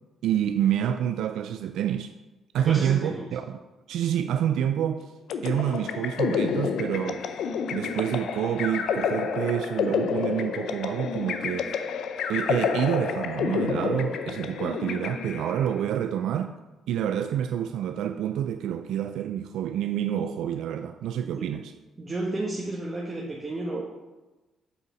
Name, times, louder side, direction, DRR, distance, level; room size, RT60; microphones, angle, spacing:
voice 1, 0.2-2.1 2.5-3.6 3.9-5.1 5.4-7.3 7.7-11.7 12.3-16.5 16.9-21.7, right 10 dB, 80° right, 0.3 m, -28 dB
voice 2, 2.6-3.3 21.2-21.5 22.0-23.8, right 2 dB, 30° right, 1.2 m, -32 dB
sound 1, 5.3-15.7, left 6 dB, 75° left, 0.6 m, -29 dB
8.1 x 4.1 x 5.0 m
cardioid pair, 90°, 0 cm